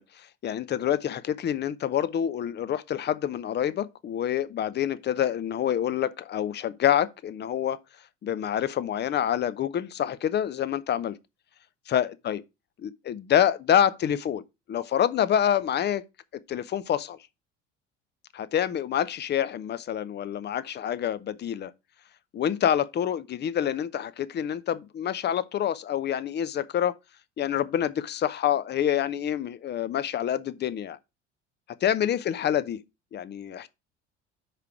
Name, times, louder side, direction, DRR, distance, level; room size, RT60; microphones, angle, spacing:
voice 1, 0.0-7.8 8.2-11.2 11.9-12.4 12.8-14.4 14.7-16.0 16.5-17.2 18.3-21.7 22.3-27.0 27.4-31.0 31.8-32.8 33.1-33.7, left 10 dB, 30° left, 0.6 m, -27 dB
4.9 x 4.7 x 5.8 m
figure-of-eight pair, 60°, 36 cm